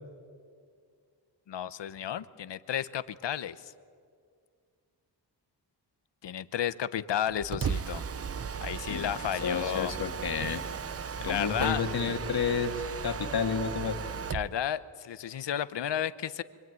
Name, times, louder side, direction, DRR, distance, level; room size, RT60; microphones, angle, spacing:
voice 1, 1.5-3.7 6.2-8.0 8.6-10.0 11.2-11.8 14.3-16.4, left 10 dB, 75° left, 14 dB, 1.0 m, -32 dB
Mechanisms, 7.3-14.5, right 6 dB, 35° right, 0.6 m, -36 dB
voice 2, 9.4-10.6 11.2-14.0, left 6 dB, 60° left, 5 dB, 2.2 m, -30 dB
25.0 x 25.0 x 9.5 m, 2.1 s
wide cardioid pair, 165°, 43 cm